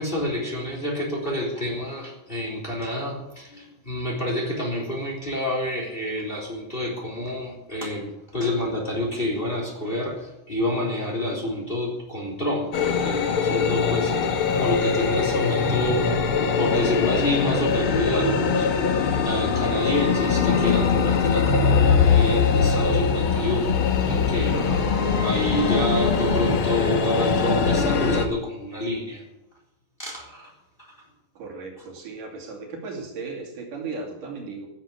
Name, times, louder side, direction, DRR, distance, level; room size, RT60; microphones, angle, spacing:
voice 1, 0.0-16.2 16.6-24.7 25.2-29.2 30.0-30.5 30.8-30.9, left 1 dB, 15° left, -1 dB, 3.7 m, -28 dB
sound 1, 12.7-28.3, left 5 dB, 55° left, 1.6 m, -22 dB
voice 2, 24.5-24.9 31.4-34.7, right 4 dB, 70° right, 0 dB, 4.2 m, -36 dB
16.0 x 7.4 x 8.5 m, 0.94 s
omnidirectional pair, 3.8 m